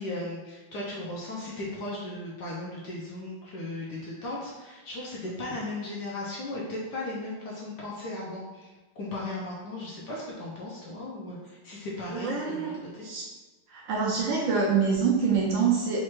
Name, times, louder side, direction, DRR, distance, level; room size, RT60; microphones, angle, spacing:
voice 1, 0.0-8.7 9.0-13.1, left 2 dB, 65° left, -5 dB, 1.1 m, -36 dB
voice 2, 12.1-12.7 13.0-13.3 13.7-16.0, right 5 dB, 70° right, -2 dB, 1.2 m, -25 dB
4.3 x 2.4 x 3.0 m, 1.3 s
omnidirectional pair, 2.3 m